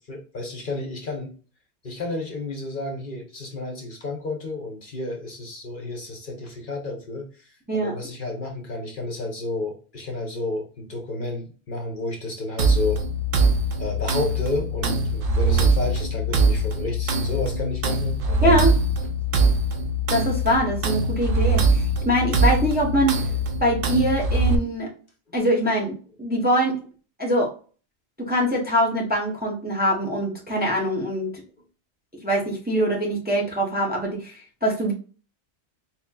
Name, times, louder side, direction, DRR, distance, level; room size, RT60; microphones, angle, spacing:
voice 1, 0.0-1.3 1.8-13.0 13.8-18.6, left 2 dB, 50° left, 0 dB, 1.0 m, -31 dB
sound 1, 12.6-24.6, right 2 dB, 60° right, 0.8 m, -22 dB
voice 2, 18.4-18.8 20.1-23.2 23.6-24.9 25.3-26.7 27.2-27.5 28.2-31.3 32.2-34.9, equal, 10° right, -2 dB, 0.8 m, -23 dB
4.3 x 2.9 x 2.2 m, 0.38 s
omnidirectional pair, 1.2 m